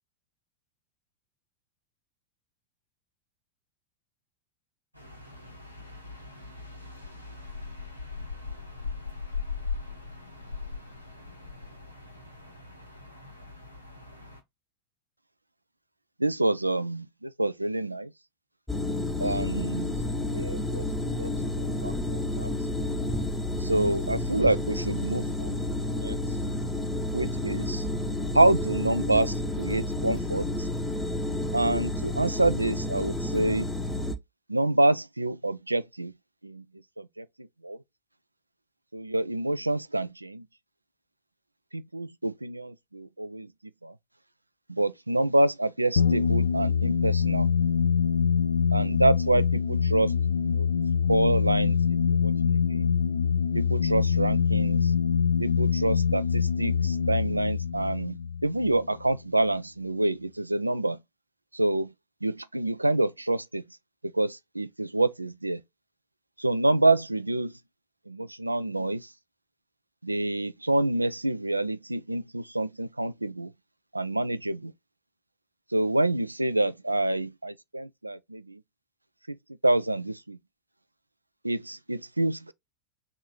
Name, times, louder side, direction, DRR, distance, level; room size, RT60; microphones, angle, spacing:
sound 1, 4.9-14.4, left 4 dB, 90° left, 1.0 m, -39 dB
voice 1, 16.2-18.1 19.2-19.9 20.3-21.3 21.6-22.5 23.6-25.6 25.9-26.2 27.1-27.8 28.3-30.7 31.5-33.7 34.5-36.1 36.4-36.6 37.0-37.8 38.9-40.4 41.7-43.5 43.8-43.9 44.7-47.5 48.7-50.1 50.4-50.7 51.1-51.8 52.1-52.9 53.5-54.9 55.4-58.2 58.4-61.0 61.5-61.9 62.2-63.6 64.1-65.6 66.4-67.5 68.1-69.1 70.0-73.5 73.9-74.7 75.7-78.6 79.3-79.4 79.6-80.4 81.4-82.5, right 2 dB, 85° right, 0.3 m, -27 dB
sound 2, 18.7-34.2, left 1 dB, 5° left, 0.7 m, -30 dB
sound 3, 46.0-59.2, left 6 dB, 65° left, 0.5 m, -25 dB
3.5 x 3.0 x 3.8 m
figure-of-eight pair, 90°, 0 cm